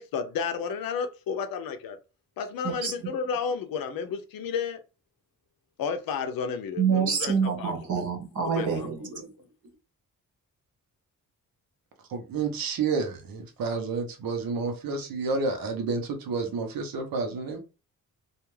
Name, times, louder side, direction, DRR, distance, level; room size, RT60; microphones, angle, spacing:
voice 1, 0.0-2.0 2.4-4.8 5.8-7.7 8.6-8.9, left 6 dB, 85° left, 0.6 m, -32 dB
voice 2, 6.8-9.3, right 6 dB, 60° right, 0.9 m, -27 dB
voice 3, 12.1-17.6, right 4 dB, 90° right, 0.8 m, -30 dB
2.4 x 2.4 x 3.1 m
cardioid pair, 100°, 34 cm